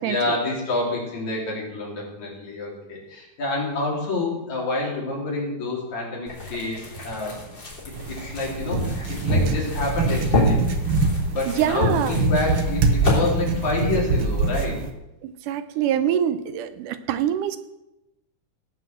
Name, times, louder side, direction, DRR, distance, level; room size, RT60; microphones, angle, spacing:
voice 1, 0.0-7.6 8.0-10.6 11.3-14.8, left 2 dB, 60° left, -3 dB, 4.8 m, -28 dB
sound 1, 6.3-13.2, left 1 dB, 35° left, 3.9 m, -27 dB
sound 2, 7.9-14.9, right 4 dB, 65° right, 1.2 m, -25 dB
voice 2, 11.5-12.2 15.2-17.6, right 10 dB, 85° right, 11 dB, 2.3 m, -24 dB
17.5 x 5.8 x 7.5 m, 0.92 s
omnidirectional pair, 3.7 m